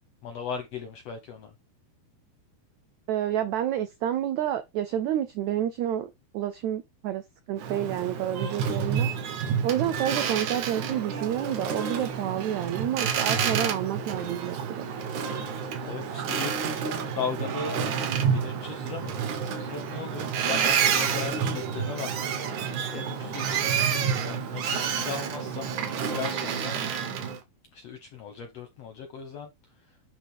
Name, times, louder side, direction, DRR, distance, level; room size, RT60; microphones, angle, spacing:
voice 1, 0.2-1.5 15.8-16.8 17.1-17.8 18.3-22.6 22.9-25.7 26.1-26.8 27.7-29.5, left 6 dB, 75° left, 1.5 m, -37 dB
voice 2, 3.1-7.2 7.5-9.1 9.6-14.8, right 11 dB, 85° right, 1.6 m, -29 dB
Boat Water vehicle, 7.6-27.4, right 7 dB, 65° right, 2.4 m, -29 dB
10.5 x 3.6 x 3.5 m
omnidirectional pair, 4.2 m